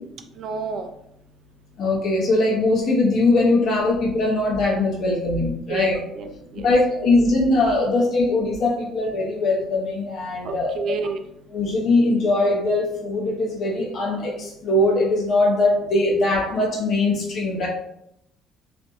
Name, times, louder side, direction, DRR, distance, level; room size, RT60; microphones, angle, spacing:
voice 1, 0.4-0.9 5.7-5.9 6.1-6.7 10.4-11.2, right 5 dB, 60° right, 7 dB, 0.4 m, -30 dB
voice 2, 1.8-6.0 6.5-11.0 11.5-17.7, left 2 dB, 60° left, -2 dB, 0.7 m, -21 dB
2.5 x 2.2 x 2.8 m, 0.76 s
hypercardioid pair, 60°, 0 cm